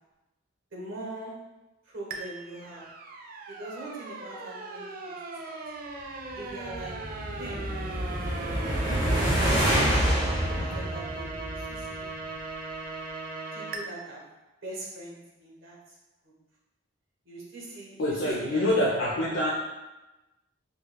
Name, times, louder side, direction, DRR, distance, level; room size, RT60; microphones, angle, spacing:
voice 1, 0.7-1.5 1.8-2.9 3.5-5.6 6.3-7.7 9.1-12.0 13.5-14.3 14.6-16.0 16.2-16.3 17.2-18.7 18.9-19.0, right 2 dB, 75° right, -4 dB, 1.1 m, -42 dB
sound 1, 2.1-13.8, right 3 dB, 45° right, 0.4 m, -38 dB
sound 2, 6.5-11.9, equal, 20° right, 0.8 m, -27 dB
voice 2, 18.0-19.5, left 1 dB, 75° left, -5 dB, 0.5 m, -25 dB
4.6 x 2.2 x 2.2 m, 1.0 s
head